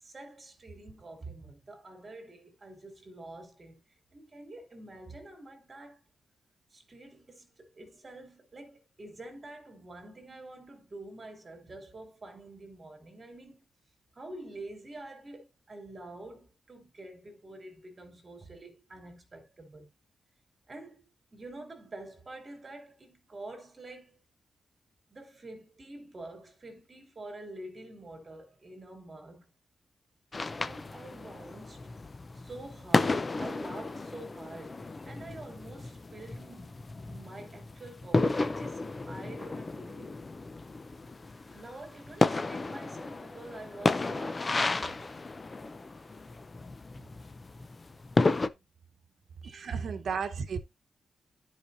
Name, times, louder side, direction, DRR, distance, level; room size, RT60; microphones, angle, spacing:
voice 1, 0.0-3.8 4.1-6.0 6.7-13.6 14.1-19.9 20.7-21.0 21.3-24.2 25.1-29.5 30.6-31.9 32.3-36.8 37.1-40.2 41.5-45.1 48.5-48.7 49.4-49.9, right 2 dB, 30° right, 2.6 m, -47 dB
sound 1, 30.3-48.5, left 3 dB, 25° left, 0.6 m, -33 dB
voice 2, 49.5-50.6, right 6 dB, 65° right, 1.1 m, -33 dB
12.5 x 5.0 x 2.7 m
wide cardioid pair, 150°, 0 cm